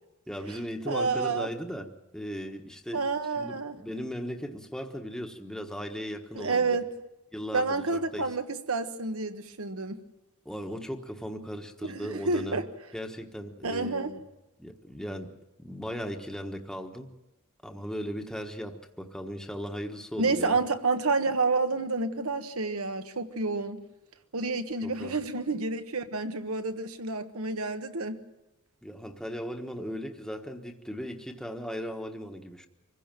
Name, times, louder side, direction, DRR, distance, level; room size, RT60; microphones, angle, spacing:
voice 1, 0.3-3.0 3.3-6.8 7.3-8.3 10.4-12.6 12.9-14.2 14.6-15.3 15.6-17.1 17.6-20.6 24.8-25.2 28.8-32.7, equal, 5° left, 3 dB, 1.3 m, -37 dB
voice 2, 0.9-1.5 2.9-3.8 6.3-6.9 7.5-10.0 11.8-12.6 13.6-14.1 20.2-23.8 24.3-28.2, right 3 dB, 75° right, 8 dB, 1.4 m, -29 dB
25.0 x 16.0 x 7.5 m, 0.99 s
head